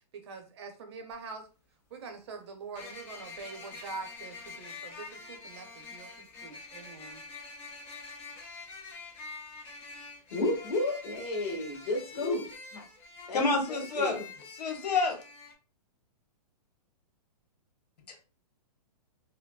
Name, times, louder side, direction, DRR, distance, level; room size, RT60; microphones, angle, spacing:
voice 1, 0.1-1.5 1.9-7.2, right 4 dB, 45° right, 6 dB, 0.6 m, -44 dB
sound 1, 1.1-1.2 2.7-15.5, left 3 dB, 10° left, 0.3 m, -46 dB
voice 2, 10.3-12.8 13.3-14.2, left 2 dB, 45° left, -2 dB, 1.6 m, -32 dB
voice 3, 13.3-14.2 14.6-15.2, left 3 dB, 85° left, 2 dB, 1.3 m, -28 dB
4.4 x 2.0 x 2.3 m, 0.35 s
hypercardioid pair, 160°, 20 cm